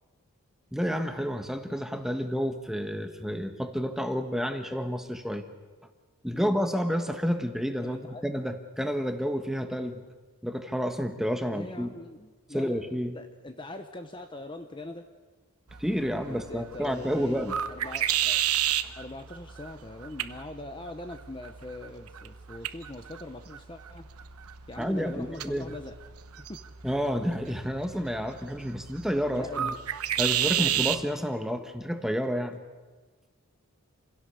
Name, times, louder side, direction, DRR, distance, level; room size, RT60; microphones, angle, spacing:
voice 1, 0.7-5.4 6.2-10.0 10.4-11.9 12.5-13.1 15.8-17.5 18.8-18.9 24.8-25.7 26.8-29.7 30.2-32.6, equal, ahead, 7 dB, 1.3 m, -30 dB
voice 2, 7.8-8.2 11.4-15.0 16.2-18.4 18.9-24.1 24.7-26.0 26.4-26.6 29.3-29.8 30.5-30.7, left 2 dB, 20° left, 6 dB, 0.9 m, -42 dB
sound 1, 15.7-31.0, right 11 dB, 85° right, 0.9 m, -33 dB
28.0 x 16.5 x 7.0 m, 1.3 s
head